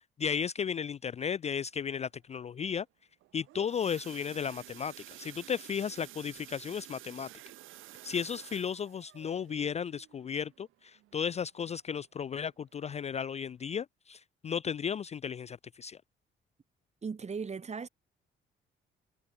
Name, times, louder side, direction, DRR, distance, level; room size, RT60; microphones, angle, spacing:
voice 1, 0.2-2.9 3.3-7.3 8.0-16.0, left 7 dB, 35° left, 0.4 m, -34 dB
sound 1, 3.2-11.9 12.3-12.6 12.8-12.9 13.4-13.5, right 16 dB, 90° right, 1.6 m, -52 dB
voice 2, 17.0-17.9, right 5 dB, 35° right, 2.1 m, -37 dB
cardioid pair, 90°, 20 cm